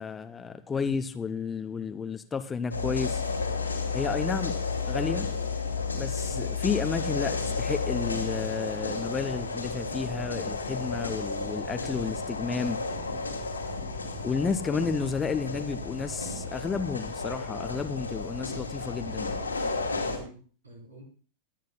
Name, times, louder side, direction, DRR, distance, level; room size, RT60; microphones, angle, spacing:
voice 1, 0.0-3.2 3.9-4.6 4.9-5.3 6.0-12.8 14.2-19.3, left 5 dB, 15° left, 0.7 m, -32 dB
sound 1, 2.7-20.2, left 4 dB, 80° left, 2.3 m, -32 dB
voice 2, 20.0-21.0, right 1 dB, 75° right, 4.3 m, -47 dB
24.5 x 9.2 x 2.3 m
figure-of-eight pair, 90°, 0 cm